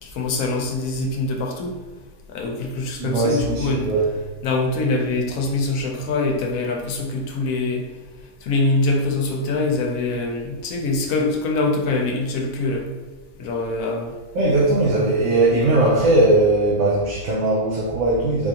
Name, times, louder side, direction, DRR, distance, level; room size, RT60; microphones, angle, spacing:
voice 1, 0.0-1.8 2.3-3.9 4.4-7.8 8.4-12.9 13.4-14.2, left 2 dB, 80° left, 2 dB, 1.0 m, -24 dB
voice 2, 3.0-4.0 14.3-18.5, right 2 dB, 85° right, -4 dB, 1.1 m, -19 dB
4.3 x 2.4 x 2.8 m, 1.3 s
omnidirectional pair, 1.5 m